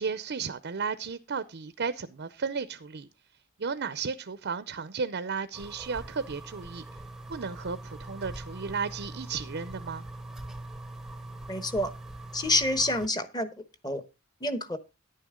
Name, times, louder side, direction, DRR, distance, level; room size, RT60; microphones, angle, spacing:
voice 1, 0.0-3.1 3.6-6.8 7.3-10.0, right 5 dB, 50° right, 0.6 m, -34 dB
sound 1, 5.5-13.1, right 1 dB, ahead, 0.8 m, -42 dB
voice 2, 11.5-11.9 12.3-13.5 13.8-14.0 14.4-14.8, left 2 dB, 20° left, 1.1 m, -27 dB
11.0 x 9.3 x 3.7 m
head